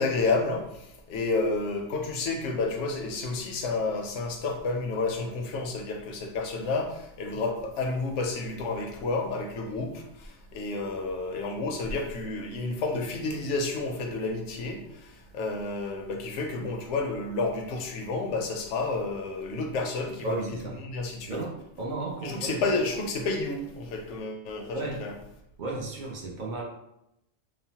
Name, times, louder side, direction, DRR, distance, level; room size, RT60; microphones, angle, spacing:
voice 1, 0.0-21.4 22.2-25.1, left 3 dB, 70° left, 2 dB, 0.8 m, -30 dB
voice 2, 20.2-20.8 21.3-22.6 24.7-25.0 25.6-26.6, right 2 dB, 50° right, -2 dB, 0.6 m, -34 dB
3.0 x 2.0 x 2.7 m, 0.83 s
omnidirectional pair, 1.3 m